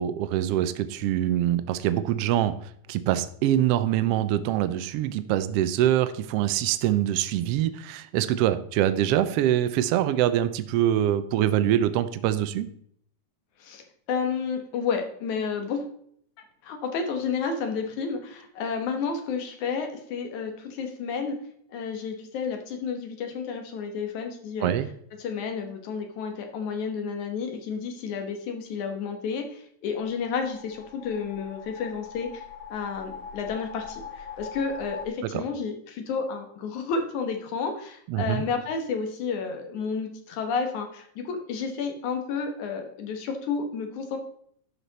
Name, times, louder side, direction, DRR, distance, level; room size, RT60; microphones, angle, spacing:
voice 1, 0.0-12.7 24.6-24.9 35.3-35.4 38.1-38.4, right 12 dB, 85° right, 12 dB, 1.4 m, -24 dB
voice 2, 13.6-15.9 16.6-21.4 21.7-24.7 25.2-32.4 32.7-44.2, left 5 dB, 85° left, 4 dB, 2.7 m, -31 dB
sound 1, 30.0-35.1, left 6 dB, 65° left, 1.8 m, -42 dB
11.5 x 6.0 x 4.0 m, 0.64 s
omnidirectional pair, 3.3 m